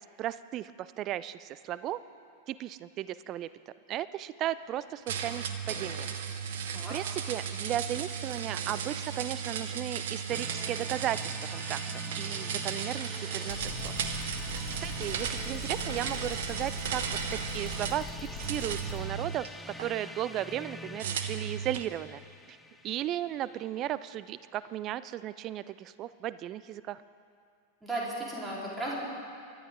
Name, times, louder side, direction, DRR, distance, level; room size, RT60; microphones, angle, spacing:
voice 1, 0.0-2.0 2.5-3.5 3.9-6.1 6.6-11.8 12.1-13.9 14.4-17.0 17.3-22.2 22.5-22.6 22.8-27.0, right 12 dB, 35° right, 16 dB, 0.4 m, -35 dB
sound 1, 5.1-18.0 18.4-19.9 21.0-21.9, right 7 dB, 55° right, 1.0 m, -35 dB
sound 2, 10.3-24.0, left 1 dB, 5° left, 0.6 m, -45 dB
sound 3, 13.5-19.0, left 5 dB, 50° left, 3.3 m, -42 dB
voice 2, 27.8-29.0, right 2 dB, 10° right, -5 dB, 3.8 m, -35 dB
23.0 x 11.5 x 3.7 m, 2.3 s
figure-of-eight pair, 90°, 0 cm